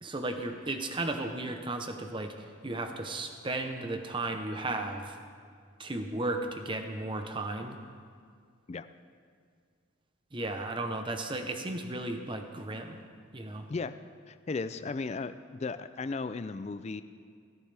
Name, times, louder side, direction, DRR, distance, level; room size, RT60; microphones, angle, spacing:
voice 1, 0.0-5.2 5.8-7.8 10.3-13.0 13.3-13.7, right 2 dB, 25° right, 5 dB, 0.8 m, -35 dB
voice 2, 14.3-17.0, left 4 dB, 30° left, 12 dB, 0.3 m, -35 dB
15.5 x 14.5 x 3.4 m, 2.1 s
head